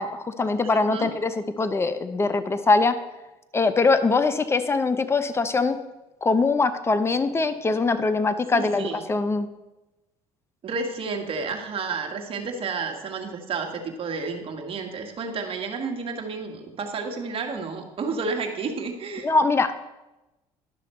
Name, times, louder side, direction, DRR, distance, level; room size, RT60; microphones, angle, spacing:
voice 1, 0.0-3.0 3.5-5.8 6.2-9.5 19.2-19.9, left 3 dB, 20° left, 11 dB, 0.7 m, -22 dB
voice 2, 8.5-9.1 10.6-19.3, right 4 dB, 45° right, 4 dB, 1.6 m, -31 dB
11.5 x 6.2 x 4.4 m, 1.0 s
supercardioid pair, 85°, 13 cm